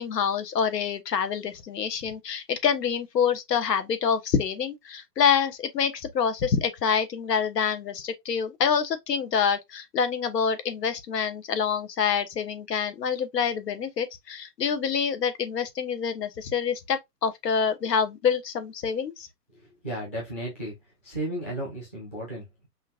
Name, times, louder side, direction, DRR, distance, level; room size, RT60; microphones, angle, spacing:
voice 1, 0.0-19.3, left 6 dB, 75° left, 1.2 m, -26 dB
voice 2, 19.8-20.7 21.0-22.7, right 1 dB, 10° left, 0.6 m, -34 dB
5.6 x 2.7 x 2.4 m
hypercardioid pair, 165°, 49 cm